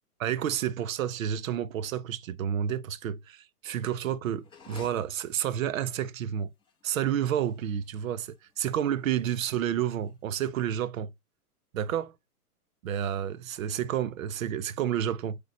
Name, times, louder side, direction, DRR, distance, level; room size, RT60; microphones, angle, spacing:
voice 1, 0.2-6.5 6.8-11.1 11.7-12.1 12.8-15.4, right 10 dB, 60° right, 0.8 m, -30 dB
sound 1, 4.4-10.5, left 4 dB, 10° left, 1.3 m, -54 dB
8.3 x 3.5 x 4.1 m
hypercardioid pair, 145°, 47 cm